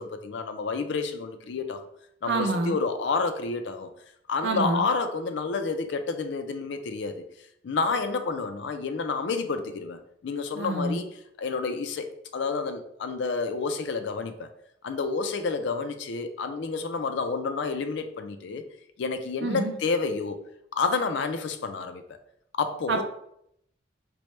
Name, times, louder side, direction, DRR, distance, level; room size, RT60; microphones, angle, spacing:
voice 1, 0.0-1.8 2.2-3.9 4.3-7.2 7.6-11.1 11.4-14.5 14.8-18.6 19.0-20.4 20.7-22.0 22.6-23.0, left 4 dB, 70° left, 8 dB, 0.4 m, -29 dB
voice 2, 2.3-2.8 4.4-4.9 10.6-11.0 19.4-19.8 22.9-23.0, right 2 dB, 65° right, 5 dB, 0.5 m, -27 dB
4.4 x 2.1 x 3.1 m, 0.73 s
head